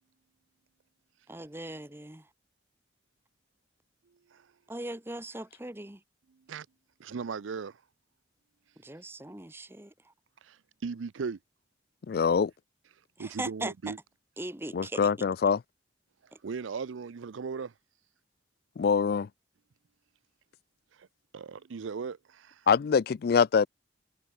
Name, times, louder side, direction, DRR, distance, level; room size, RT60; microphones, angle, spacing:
voice 1, 1.3-2.2 4.7-6.0 8.8-9.9 13.2-13.9 14.4-15.1, right 1 dB, 10° right, 1.1 m, -39 dB
voice 2, 7.0-7.8 10.4-11.4 13.2-14.0 16.4-17.7 21.0-21.1 21.3-22.6, right 5 dB, 90° right, 0.5 m, -37 dB
voice 3, 12.1-12.5 14.7-15.6 18.8-19.3 22.7-23.7, left 6 dB, 55° left, 0.3 m, -24 dB
head